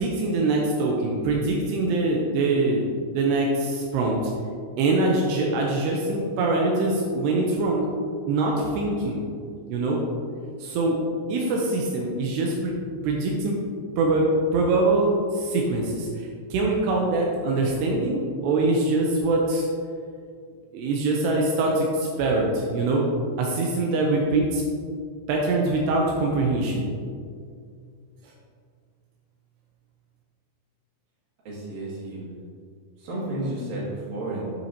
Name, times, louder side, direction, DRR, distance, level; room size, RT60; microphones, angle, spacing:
voice 1, 0.0-2.9 3.1-4.2 4.8-7.9 8.3-9.2 9.7-10.0 10.6-11.0 11.3-12.7 13.0-13.5 14.0-19.7 20.7-23.0 23.4-24.6 25.3-26.9, right 2 dB, 80° right, -1 dB, 2.5 m, -23 dB
voice 2, 31.5-32.2 33.0-34.5, right 1 dB, 50° right, -7 dB, 3.6 m, -31 dB
9.2 x 8.9 x 2.9 m, 2.2 s
omnidirectional pair, 5.7 m